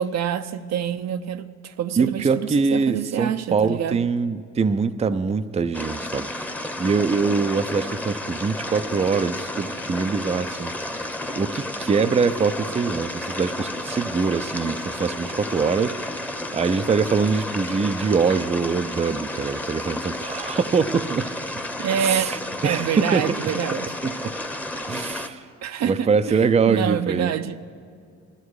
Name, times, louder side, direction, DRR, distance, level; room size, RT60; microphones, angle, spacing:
voice 1, 0.0-4.0 21.8-22.3 22.6-23.9 25.6-26.4 26.7-27.6, right 9 dB, 60° right, 0.6 m, -26 dB
voice 2, 2.0-6.3 6.8-11.0 11.3-16.3 16.5-21.3 22.0-23.4 24.0-24.3 24.9-25.4 25.8-27.3, right 5 dB, 20° right, 0.5 m, -23 dB
sound 1, 5.7-25.3, left 1 dB, 5° left, 0.9 m, -32 dB
19.0 x 13.0 x 4.8 m
cardioid pair, 90°, 30 cm